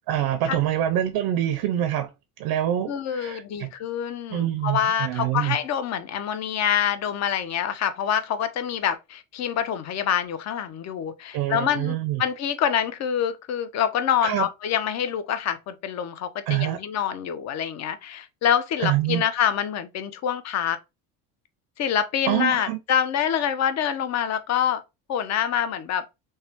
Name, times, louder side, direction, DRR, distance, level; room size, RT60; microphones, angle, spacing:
voice 1, 0.1-2.1 2.4-3.7 4.3-5.6 11.3-12.2 14.2-14.5 16.5-16.8 18.8-19.2 22.3-22.8, right 12 dB, 60° right, 0.5 m, -25 dB
voice 2, 2.9-20.8 21.8-24.8 25.1-26.1, left 9 dB, 40° left, 0.5 m, -26 dB
3.2 x 2.2 x 2.7 m
supercardioid pair, 95°, 44 cm